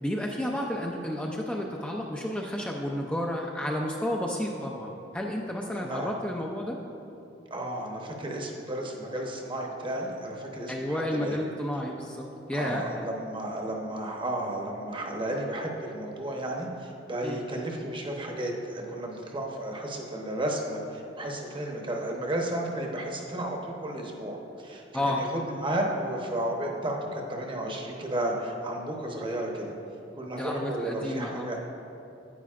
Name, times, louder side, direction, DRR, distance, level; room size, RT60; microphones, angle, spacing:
voice 1, 0.0-6.8 10.7-12.9 17.2-17.4 24.9-25.2 30.4-31.5, left 1 dB, 5° left, -1 dB, 0.4 m, -31 dB
voice 2, 5.7-6.1 7.5-11.4 12.5-29.7 30.2-31.7, right 1 dB, 25° right, 0 dB, 0.9 m, -33 dB
9.9 x 9.2 x 2.5 m, 2.8 s
head